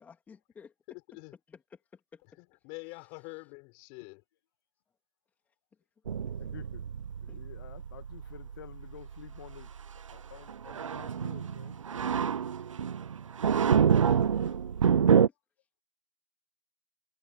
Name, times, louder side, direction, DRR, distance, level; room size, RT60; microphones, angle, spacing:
voice 1, 0.0-0.7 1.5-2.2 2.8-3.2 5.5-5.6 6.2-6.4 7.3-7.4, left 6 dB, 10° left, 2.7 m, -54 dB
voice 2, 0.9-1.3 2.4-4.2, left 33 dB, 30° left, 6.9 m, -46 dB
sound 1, 6.1-15.3, right 7 dB, 80° right, 0.7 m, -27 dB
voice 3, 6.4-6.8 7.2-9.7 10.1-12.2, left 12 dB, 45° left, 1.9 m, -50 dB
hypercardioid pair, 140°, 16 cm